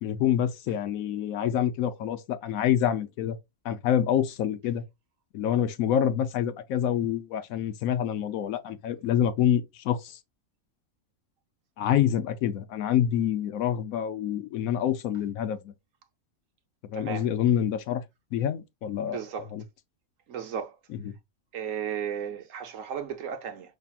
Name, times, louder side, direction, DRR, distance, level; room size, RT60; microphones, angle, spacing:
voice 1, 0.0-3.4 3.6-4.8 5.3-10.2 11.8-15.7 16.8-18.0 18.3-19.2 19.5-19.6 21.0-21.1, left 10 dB, 85° left, 1.1 m, -27 dB
voice 2, 16.9-17.3 19.0-19.5 20.3-20.8 21.5-23.8, right 8 dB, 70° right, 1.1 m, -34 dB
5.6 x 3.3 x 2.3 m
omnidirectional pair, 1.4 m